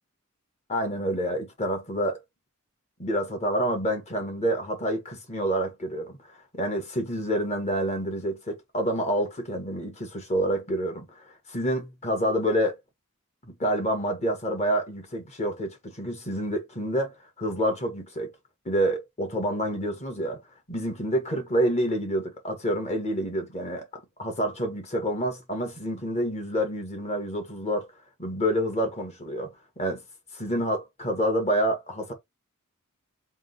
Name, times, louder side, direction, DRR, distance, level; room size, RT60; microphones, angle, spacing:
voice 1, 0.7-2.2 3.0-6.2 6.5-11.2 11.5-12.8 13.4-18.3 18.6-20.4 20.7-23.8 24.2-27.9 28.2-30.0 30.3-32.1, equal, 30° left, 1.5 m, -28 dB
3.6 x 2.8 x 3.9 m
head